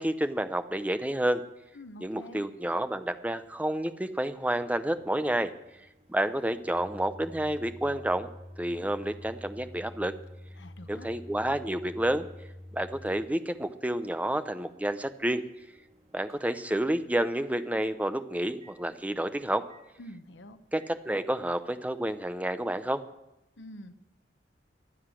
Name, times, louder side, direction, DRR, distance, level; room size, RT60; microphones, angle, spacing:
voice 1, 0.0-1.4 2.0-5.5 6.1-8.3 8.6-10.1 10.9-12.3 12.7-15.4 16.1-19.6 20.7-23.0, right 1 dB, 10° right, 10 dB, 0.6 m, -29 dB
voice 2, 1.7-2.5 10.6-11.1 20.0-20.6 23.6-23.9, left 1 dB, 85° left, 9 dB, 0.9 m, -46 dB
Microwave oven, 4.5-17.1 17.5-17.7 18.6-18.8 19.7-19.9 20.8-20.9, left 1 dB, 35° right, 2.1 m, -49 dB
22.5 x 8.0 x 6.3 m, 0.91 s
head